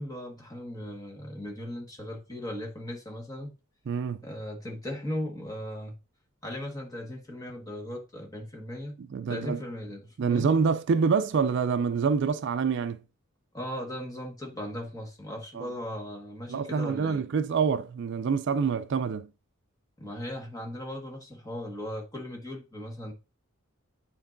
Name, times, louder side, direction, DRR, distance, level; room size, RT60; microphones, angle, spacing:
voice 1, 0.0-3.5 4.2-6.0 6.4-9.0 9.3-10.5 13.5-17.3 20.0-23.1, left 1 dB, 15° left, 1.4 m, -37 dB
voice 2, 3.9-4.2 9.1-9.6 10.2-13.0 15.5-15.7 16.5-19.3, right 5 dB, 55° right, 0.4 m, -26 dB
9.5 x 4.5 x 2.5 m
head